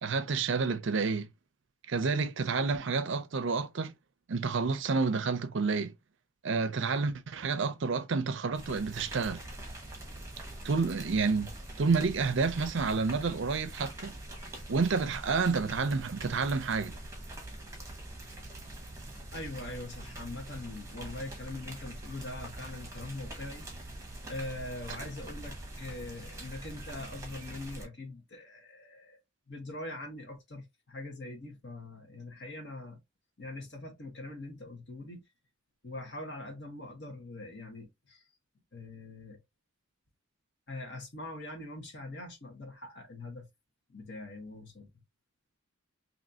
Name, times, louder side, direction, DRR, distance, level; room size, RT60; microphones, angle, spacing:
voice 1, 0.0-1.3 1.9-3.9 4.3-5.9 6.4-9.4 10.6-11.5 11.8-14.1 14.7-16.9, right 4 dB, 55° right, 0.5 m, -29 dB
sound 1, 8.5-27.9, right 1 dB, 15° right, 1.0 m, -44 dB
voice 2, 19.3-23.6 24.3-29.2 29.5-33.0 33.4-35.2 35.8-38.2 38.7-39.4 40.7-43.5 43.9-44.9, left 2 dB, 50° left, 1.4 m, -42 dB
4.2 x 2.8 x 2.7 m
head